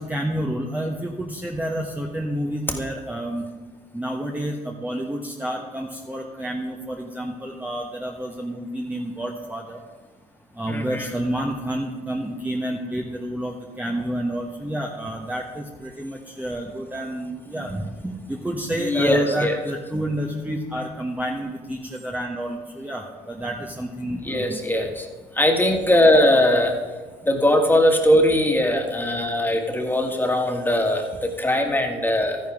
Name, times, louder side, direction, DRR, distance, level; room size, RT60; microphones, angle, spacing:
voice 1, 0.0-3.4 3.9-9.8 10.6-24.6, right 1 dB, 10° right, 0 dB, 1.2 m, -29 dB
voice 2, 10.7-11.1 18.8-19.6 24.2-25.1 25.3-26.8 27.2-32.4, left 1 dB, 10° left, 2 dB, 2.0 m, -20 dB
13.0 x 10.5 x 3.6 m, 1.4 s
supercardioid pair, 70°, 18 cm